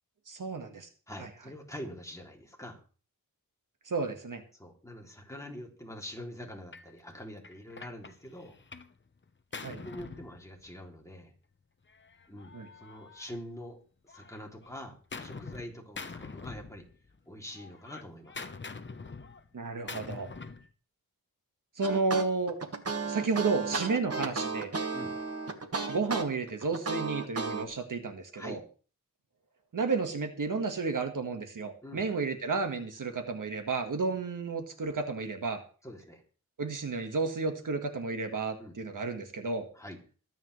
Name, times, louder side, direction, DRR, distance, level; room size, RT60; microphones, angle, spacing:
voice 1, 0.3-0.9 3.9-4.4 9.6-9.8 12.5-12.7 19.5-20.3 21.8-22.6 23.0-24.7 25.9-28.6 29.7-35.6 36.6-39.7, right 4 dB, 65° right, 6 dB, 1.6 m, -32 dB
voice 2, 1.1-2.8 4.5-8.6 9.8-11.3 12.3-16.8 17.3-18.5 24.9-25.1 28.3-28.6 31.8-32.1 35.8-36.2 38.6-38.8 39.7-40.0, equal, 10° left, 0 dB, 2.9 m, -45 dB
Gunshot gunfire, 6.7-6.9 7.4-9.0 9.2-10.9 11.9-13.7 14.1-15.7 16.0-17.2 17.5-20.7, left 4 dB, 35° left, 0.9 m, -45 dB
sound 1, 21.8-27.6, right 4 dB, 45° right, 1.6 m, -33 dB
23.0 x 9.0 x 3.2 m, 0.39 s
wide cardioid pair, 125°, 35 cm